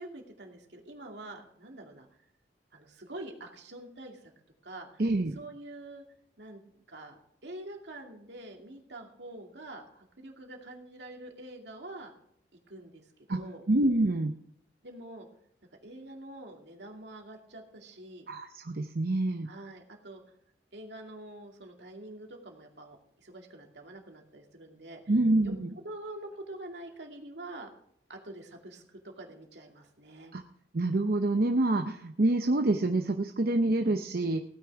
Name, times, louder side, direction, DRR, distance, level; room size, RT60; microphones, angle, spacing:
voice 1, 0.0-2.1 2.7-4.3 4.6-5.0 5.3-6.0 6.4-6.6 6.9-12.1 12.7-13.0 13.3-13.6 14.8-15.3 15.8-18.3 19.4-20.2 20.7-25.0 25.4-25.5 25.8-27.7 28.1-30.3, right 1 dB, 75° right, 2 dB, 2.5 m, -46 dB
voice 2, 5.0-5.4 13.3-13.4 13.7-14.3 18.3-19.5 25.1-25.7 30.3-30.4 30.7-34.4, right 2 dB, 55° right, 5 dB, 0.7 m, -27 dB
16.5 x 9.6 x 4.7 m, 0.69 s
head